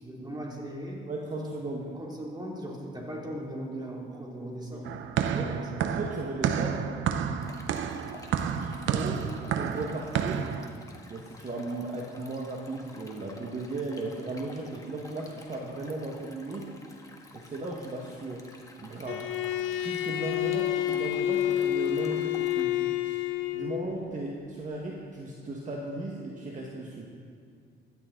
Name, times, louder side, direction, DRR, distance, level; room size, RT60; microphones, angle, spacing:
voice 1, 0.0-1.0 1.6-6.0 19.7-19.8, right 1 dB, 20° right, -2 dB, 2.9 m, -39 dB
voice 2, 1.1-1.9 5.3-5.5 5.8-6.9 8.3-10.5 11.1-16.7 17.3-18.5 18.8-19.3 19.8-23.2 23.5-27.1, right 2 dB, 40° right, -2 dB, 1.6 m, -36 dB
sound 1, 4.8-10.7, right 8 dB, 75° right, 0.7 m, -30 dB
Stream, 7.4-22.6, left 2 dB, 15° left, 1.5 m, -52 dB
Bowed string instrument, 19.1-23.9, left 12 dB, 80° left, 0.6 m, -29 dB
16.0 x 11.5 x 3.9 m, 2.3 s
cardioid pair, 90°, 20 cm